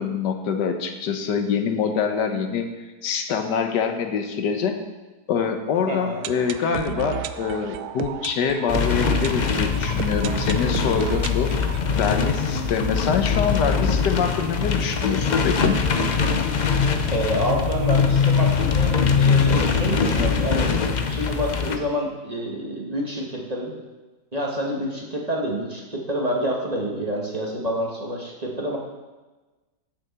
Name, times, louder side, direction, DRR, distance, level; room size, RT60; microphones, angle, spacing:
voice 1, 0.0-2.6 3.0-4.8 5.3-11.5 11.9-15.8, left 6 dB, 90° left, 6 dB, 1.6 m, -25 dB
sound 1, 5.7-13.5 13.8-13.9 14.1-14.2 14.7-14.8, right 11 dB, 75° right, 1.0 m, -34 dB
voice 2, 5.9-6.2 17.1-20.7 21.1-23.7 24.3-28.8, equal, 25° right, -1 dB, 1.5 m, -27 dB
sound 2, 8.7-21.8, left 5 dB, 70° left, 0.4 m, -22 dB
8.6 x 7.1 x 6.8 m, 1.2 s
omnidirectional pair, 1.8 m